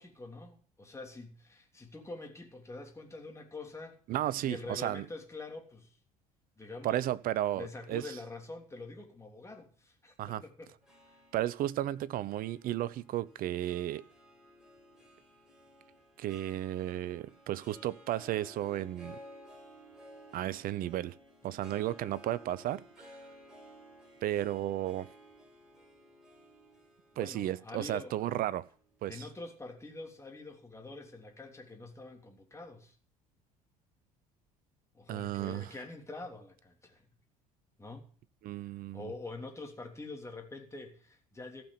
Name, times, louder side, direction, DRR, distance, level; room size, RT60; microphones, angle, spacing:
voice 1, 0.0-4.0 4.4-6.0 6.6-7.0 7.5-11.2 27.1-28.2 29.1-32.9 34.9-37.1 37.8-38.1 38.7-41.6, left 2 dB, 15° left, 3.2 m, -45 dB
voice 2, 4.1-5.0 6.8-8.0 10.2-10.4 11.3-14.0 16.2-19.2 20.3-21.1 21.4-23.1 24.2-25.1 27.2-28.6 29.0-29.2 35.1-35.7 38.4-39.1, right 13 dB, 50° right, 0.7 m, -34 dB
Harp, 10.8-29.3, equal, 5° right, 4.9 m, -56 dB
15.0 x 6.1 x 9.5 m
figure-of-eight pair, 60°, 19 cm